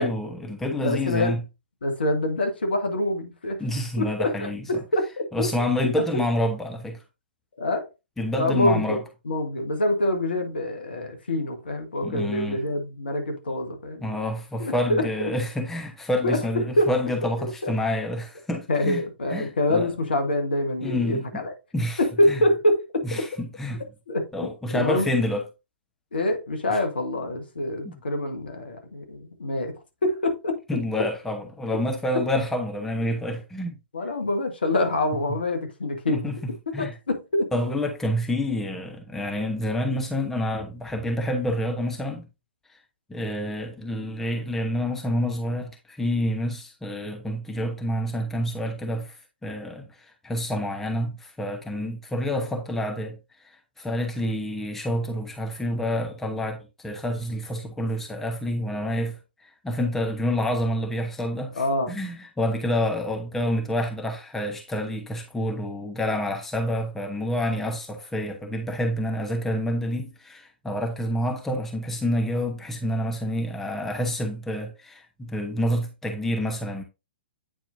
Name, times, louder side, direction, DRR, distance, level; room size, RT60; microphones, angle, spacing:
voice 1, 0.0-1.4 3.6-4.6 5.3-7.0 8.2-9.0 12.0-12.6 14.0-19.0 19.3-19.9 20.8-21.4 21.7-22.0 22.3-22.4 23.0-23.8 24.3-25.4 27.8-28.0 30.7-33.7 36.1-36.3 36.7-36.9 37.5-42.3 43.1-49.2 49.4-49.9 50.2-53.5 53.8-61.6 61.9-76.8, left 1 dB, 5° left, 1.0 m, -28 dB
voice 2, 0.8-1.4 1.8-3.6 4.0-4.5 4.9-5.5 5.9-6.2 7.6-7.9 8.3-9.0 9.2-14.0 14.6-15.3 16.2-16.9 17.4-17.7 18.7-21.5 22.0-23.2 24.1-24.3 24.7-25.1 26.1-30.6 33.9-36.3 36.8-37.5 61.5-62.0, left 1 dB, 65° left, 1.5 m, -25 dB
8.9 x 4.5 x 2.6 m
figure-of-eight pair, 115°, 6 cm